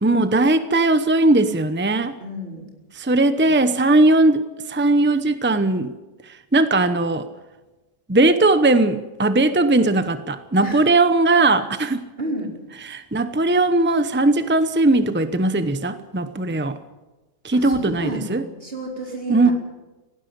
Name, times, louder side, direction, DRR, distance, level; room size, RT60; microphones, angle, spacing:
voice 1, 0.0-2.1 2.9-4.4 4.7-5.9 6.3-7.3 8.1-12.0 12.9-16.8 17.4-18.4 19.3-19.5, right 2 dB, 15° right, 11 dB, 0.4 m, -18 dB
voice 2, 2.2-2.7 3.4-3.5 10.5-10.9 12.2-12.6 17.5-19.5, right 1 dB, 35° right, 0 dB, 4.7 m, -31 dB
18.5 x 16.0 x 10.0 m, 1.1 s
omnidirectional pair, 1.8 m